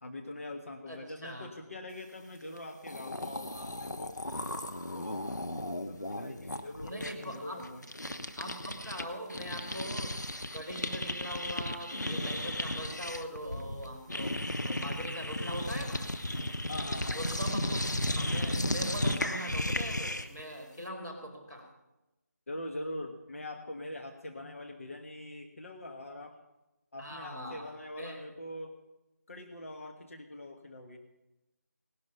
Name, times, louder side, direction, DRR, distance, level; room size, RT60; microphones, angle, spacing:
voice 1, 0.0-4.2 4.9-5.2 5.7-7.8 16.7-17.2 22.5-26.4 26.9-28.7 29.3-31.0, left 1 dB, 50° left, 4 dB, 1.4 m, -43 dB
voice 2, 0.9-1.5 6.8-7.7 8.4-10.2 10.5-14.3 14.6-16.1 17.1-21.7 27.0-27.7 27.9-28.2, equal, 10° left, -7 dB, 2.7 m, -41 dB
sound 1, 2.6-2.7 2.8-9.0 9.3-20.4, left 1 dB, 85° left, 1.3 m, -35 dB
18.5 x 11.5 x 5.6 m, 0.99 s
figure-of-eight pair, 165°, 9 cm